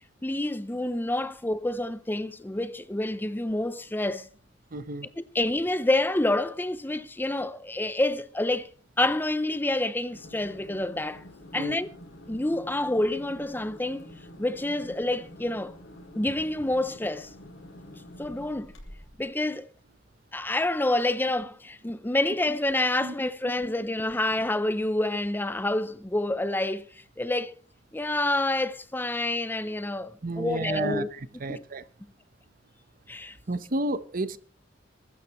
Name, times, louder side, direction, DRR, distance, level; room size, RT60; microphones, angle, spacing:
voice 1, 0.2-4.3 5.2-8.7 9.0-11.2 11.5-11.9 12.3-14.1 14.4-15.7 16.1-17.3 18.2-18.7 19.2-19.7 20.3-27.5 27.9-31.1 31.5-31.6 33.1-33.4, left 1 dB, 10° left, 0.5 m, -28 dB
voice 2, 4.7-5.1 11.5-11.8 23.0-23.1 30.2-31.0 31.4-31.8 33.5-34.4, right 2 dB, 45° right, 0.9 m, -31 dB
sound 1, 10.0-19.2, left 1 dB, 80° left, 5.0 m, -47 dB
22.0 x 12.5 x 3.1 m
head